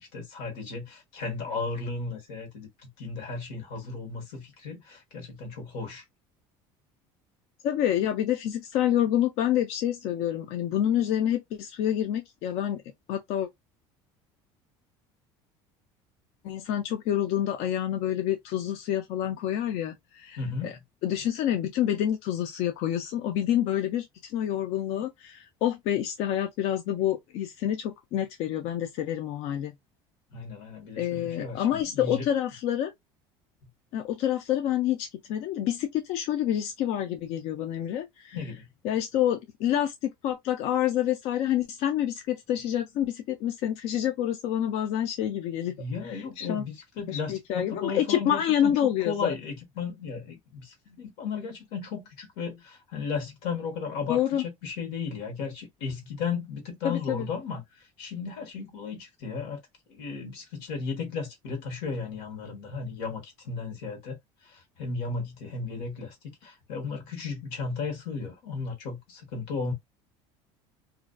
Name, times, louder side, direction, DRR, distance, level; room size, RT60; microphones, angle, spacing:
voice 1, 0.0-6.0 20.4-20.8 30.3-32.2 38.3-38.7 45.8-48.7 49.0-59.6 59.9-64.2 64.4-69.7, left 4 dB, 90° left, 1.1 m, -35 dB
voice 2, 7.6-12.8 13.1-13.5 16.4-29.7 31.0-32.9 33.9-38.4 38.8-45.8 46.1-46.6 47.1-49.3 54.1-54.4 56.8-57.3, left 11 dB, 60° left, 0.4 m, -28 dB
2.4 x 2.2 x 2.3 m
cardioid pair, 145°, 12 cm